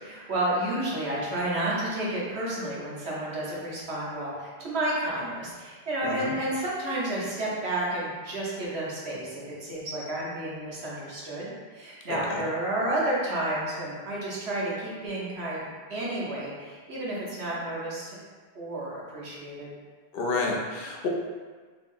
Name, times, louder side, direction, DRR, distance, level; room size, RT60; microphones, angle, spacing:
voice 1, 0.0-18.2 18.5-19.7, right 1 dB, 85° right, -6 dB, 1.2 m, -31 dB
voice 2, 6.0-6.3 12.1-12.4 20.1-21.1, left 3 dB, 70° left, 0 dB, 0.8 m, -30 dB
3.4 x 3.3 x 2.6 m, 1.5 s
omnidirectional pair, 1.1 m